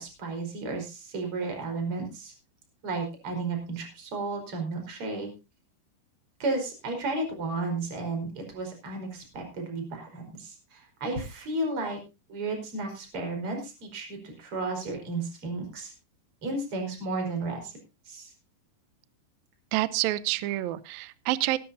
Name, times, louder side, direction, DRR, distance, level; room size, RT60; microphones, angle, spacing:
voice 1, 0.0-2.3 2.8-5.3 6.4-12.0 12.3-15.9 16.4-17.7 18.1-18.3, right 3 dB, 30° right, 3 dB, 5.2 m, -33 dB
voice 2, 19.7-21.6, right 16 dB, 80° right, 15 dB, 2.1 m, -28 dB
19.0 x 12.5 x 2.7 m, 0.28 s
omnidirectional pair, 5.1 m